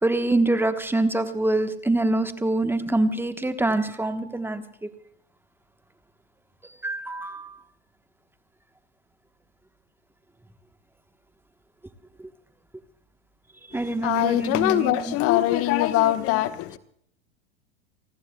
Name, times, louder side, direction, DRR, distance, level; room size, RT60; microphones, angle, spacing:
voice 1, 0.0-4.6 6.8-7.5 13.7-15.1, right 2 dB, 5° right, 1.2 m, -25 dB
voice 2, 13.7-16.8, left 14 dB, 45° left, 1.2 m, -23 dB
29.5 x 19.5 x 2.3 m
hypercardioid pair, 95°, 32 cm